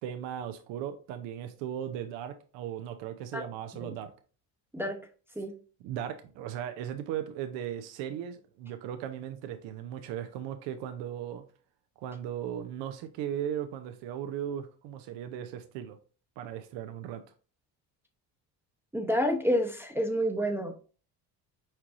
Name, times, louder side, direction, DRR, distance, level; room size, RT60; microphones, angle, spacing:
voice 1, 0.0-4.1 5.8-11.4 12.0-16.0 16.4-17.2, right 10 dB, 75° right, 0.6 m, -37 dB
voice 2, 18.9-20.7, equal, 5° right, 0.7 m, -28 dB
4.6 x 4.4 x 2.5 m
supercardioid pair, 75°, 44 cm